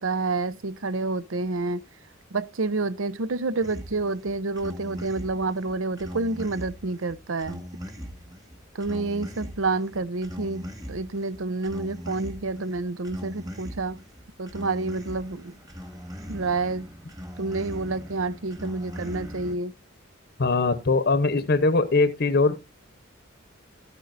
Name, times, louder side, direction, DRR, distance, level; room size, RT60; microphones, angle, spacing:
voice 1, 0.0-1.8 2.3-7.6 8.7-14.0 14.4-15.5 16.3-16.9 17.4-19.7, right 3 dB, 70° right, 0.7 m, -29 dB
sound 1, 3.6-19.6, equal, 20° right, 1.7 m, -40 dB
voice 2, 20.4-22.5, left 3 dB, 50° left, 0.8 m, -21 dB
12.5 x 9.0 x 2.5 m
head